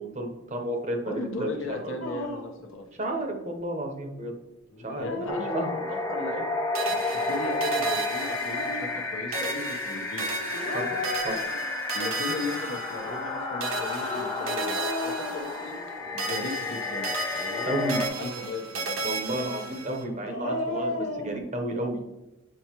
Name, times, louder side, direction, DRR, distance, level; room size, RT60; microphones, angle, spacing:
voice 1, 0.0-2.0 3.0-4.3 4.8-5.1 5.5-5.7 10.7-11.3 17.7-18.0 19.0-22.0, right 1 dB, 35° right, 4 dB, 0.9 m, -32 dB
voice 2, 1.1-2.9 5.0-5.6 5.9-6.5 6.8-10.2 11.9-15.7 16.1-17.1 18.2-19.0, left 2 dB, 60° left, 3 dB, 0.9 m, -36 dB
Dog, 2.0-2.6 4.7-6.1 8.2-9.0 10.5-12.0 12.9-16.1 17.3-18.7 20.1-21.4, left 2 dB, 80° left, 1.2 m, -35 dB
sound 1, 5.3-18.1, left 2 dB, 15° left, 0.7 m, -31 dB
sound 2, 6.7-9.0 9.3-13.3 13.6-15.9 16.2-20.0, right 3 dB, 70° right, 1.1 m, -35 dB
7.9 x 4.6 x 3.0 m, 0.99 s
head